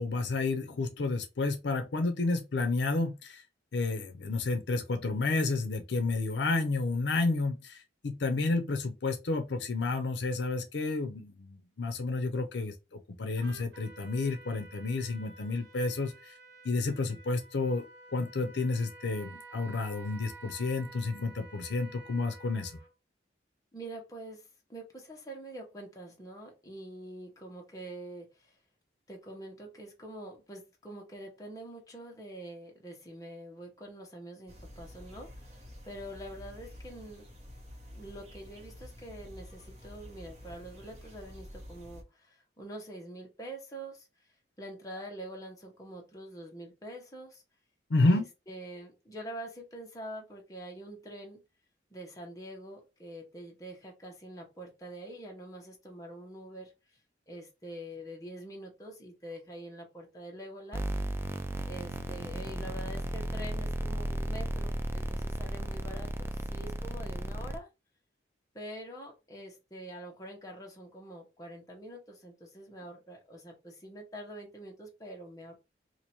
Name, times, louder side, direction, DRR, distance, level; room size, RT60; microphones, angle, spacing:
voice 1, 0.0-3.4 3.7-16.3 16.6-17.8 18.1-22.7 47.9-48.3, left 3 dB, 75° left, 0.6 m, -30 dB
Trumpet, 13.4-22.9, right 3 dB, 75° right, 1.0 m, -51 dB
voice 2, 23.7-28.6 29.1-37.2 38.0-44.1 44.6-47.4 48.0-51.4 51.9-57.0 57.3-60.9 61.7-67.7 68.5-75.6, right 1 dB, 20° left, 1.1 m, -45 dB
sound 1, 34.5-42.0, left 1 dB, 40° right, 1.1 m, -49 dB
sound 2, 60.7-67.6, right 1 dB, 15° right, 0.3 m, -34 dB
2.9 x 2.6 x 4.3 m
head